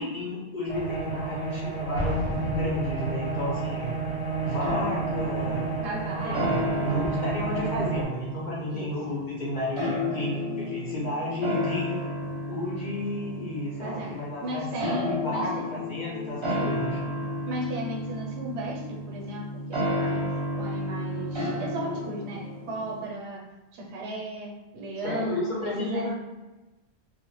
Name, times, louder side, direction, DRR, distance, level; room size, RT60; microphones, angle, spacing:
voice 1, 0.0-4.0 4.4-5.7 6.2-12.0 12.5-17.0 25.0-26.1, left 1 dB, 50° left, -6 dB, 0.7 m, -32 dB
sound 1, 0.7-8.0, right 4 dB, 85° left, 1.0 m, -31 dB
Explosion, 2.0-3.6, left 1 dB, 10° left, 0.9 m, -34 dB
sound 2, 4.6-23.1, left 1 dB, 30° right, 0.7 m, -32 dB
voice 2, 5.8-7.2 8.7-9.3 13.8-15.7 16.3-16.8 17.4-26.1, right 1 dB, 90° right, -1 dB, 0.9 m, -36 dB
2.0 x 2.0 x 2.9 m, 1.1 s
omnidirectional pair, 1.1 m